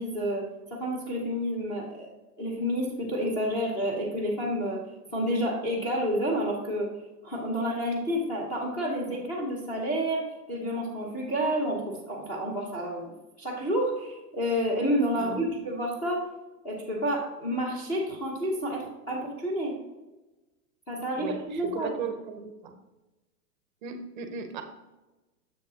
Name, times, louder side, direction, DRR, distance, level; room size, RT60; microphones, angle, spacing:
voice 1, 0.0-4.8 5.1-6.9 7.2-13.1 13.4-16.3 16.6-19.8 20.9-22.0, equal, 15° left, -4 dB, 0.9 m, -29 dB
voice 2, 21.2-22.7 23.8-24.6, right 5 dB, 30° right, 6 dB, 0.7 m, -36 dB
7.3 x 6.6 x 2.8 m, 1.1 s
hypercardioid pair, 165°, 48 cm